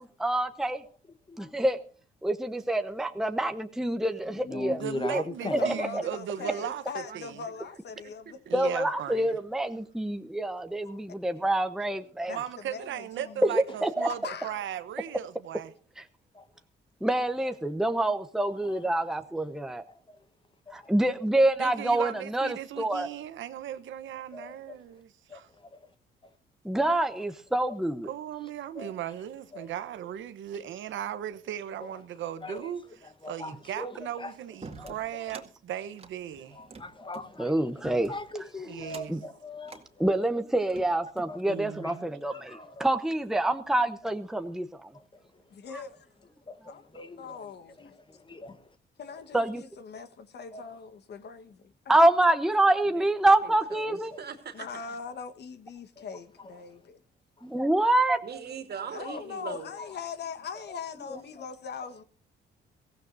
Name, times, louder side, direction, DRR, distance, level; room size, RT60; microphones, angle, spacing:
voice 1, 0.2-0.8 1.4-1.8 2.2-4.8 5.1-5.2 5.5-6.0 8.5-12.3 13.4-14.1 16.0-16.1 17.0-19.8 20.7-23.1 26.6-28.1 34.8-34.9 37.4-38.1 39.1-39.2 40.0-44.9 45.7-45.8 49.3-49.6 51.9-54.1 57.4-58.2, right 1 dB, ahead, 0.9 m, -26 dB
voice 2, 4.3-6.5 10.5-11.0 13.7-13.8 16.3-16.5 18.6-18.9 19.9-20.2 20.7-20.9 23.0-23.3 24.3-25.0 25.3-25.9 26.2-26.3 27.1-27.2 28.4-28.5 28.7-28.9 29.5-29.7 31.8-32.0 32.4-32.7 33.0-34.4 34.7-35.4 36.4-40.1 41.3-42.9 44.9-45.4 46.5-47.5 47.8-48.7 49.1-49.2 50.5-50.6 54.1-54.2 56.0-56.5 57.4-57.7 59.8-60.0, left 2 dB, 25° left, 1.2 m, -42 dB
voice 3, 4.8-6.8 7.1-7.4 8.5-9.3 12.3-15.7 21.6-25.5 28.0-32.8 33.3-36.6 38.7-39.1 41.4-42.1, right 10 dB, 75° right, 1.0 m, -37 dB
voice 4, 5.4-8.4 8.9-9.1 12.3-13.5 14.2-14.6 18.6-18.7 45.5-46.1 46.7-47.9 49.0-52.0 54.5-57.0 58.9-62.0, left 5 dB, 55° left, 1.3 m, -41 dB
voice 5, 6.6-7.2 7.6-7.7 8.0-8.8 52.8-53.1 53.4-54.8 58.2-59.7, right 6 dB, 55° right, 2.5 m, -42 dB
sound 1, 34.6-35.5 35.9-37.3 37.8-38.3 38.8-39.2 39.6-39.9 40.5-41.4, right 4 dB, 30° right, 2.1 m, -46 dB
22.5 x 15.5 x 2.6 m
cardioid pair, 90°, 20 cm